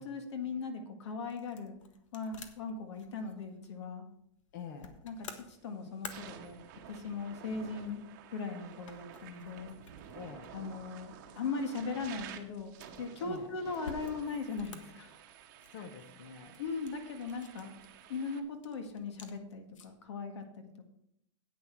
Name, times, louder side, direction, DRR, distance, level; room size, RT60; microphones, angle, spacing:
voice 1, 0.0-1.8 2.1-4.0 5.0-8.0 8.3-9.7 10.5-15.1 16.6-17.7 18.1-20.9, left 4 dB, 65° left, 6 dB, 1.7 m, -39 dB
sound 1, 0.5-20.1, left 5 dB, 85° left, 1.4 m, -54 dB
voice 2, 4.5-4.9 10.1-10.5 13.2-13.5 15.7-16.6, left 6 dB, 40° left, 6 dB, 1.0 m, -46 dB
sound 2, 5.2-5.5 5.9-18.4, right 8 dB, 35° right, 1.0 m, -51 dB
10.0 x 9.0 x 4.6 m, 0.77 s
supercardioid pair, 175°, 16 cm